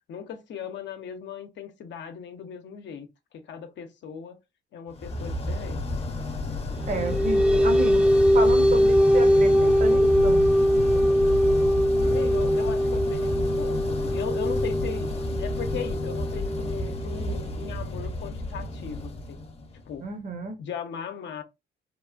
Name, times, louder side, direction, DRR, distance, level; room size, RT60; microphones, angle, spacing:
voice 1, 0.1-3.1 3.3-4.4 4.7-5.9 12.0-15.1 15.4-19.5 19.9-20.1 20.6-21.4, left 7 dB, 65° left, 0.7 m, -38 dB
sound 1, 5.0-20.0, left 1 dB, 30° left, 0.7 m, -31 dB
sound 2, 6.7-17.7, equal, 5° right, 0.5 m, -22 dB
voice 2, 6.8-8.1 8.3-10.5 20.0-20.6, right 3 dB, 45° right, 0.8 m, -31 dB
3.0 x 2.1 x 2.4 m
cardioid pair, 90°, 20 cm